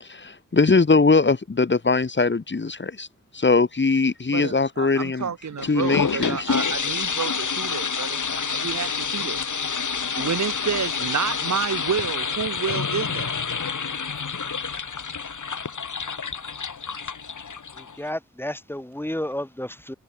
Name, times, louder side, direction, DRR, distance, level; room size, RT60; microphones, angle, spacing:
voice 1, 0.0-3.1 3.3-5.3 5.6-6.5, left 4 dB, 40° left, 0.9 m, -21 dB
voice 2, 4.3-9.4 10.2-13.3, right 7 dB, 70° right, 0.7 m, -29 dB
sound 1, 5.6-18.1, left 5 dB, 85° left, 1.6 m, -28 dB
voice 3, 17.8-19.9, left 1 dB, 5° left, 1.1 m, -32 dB
wide cardioid pair, 50°, 29 cm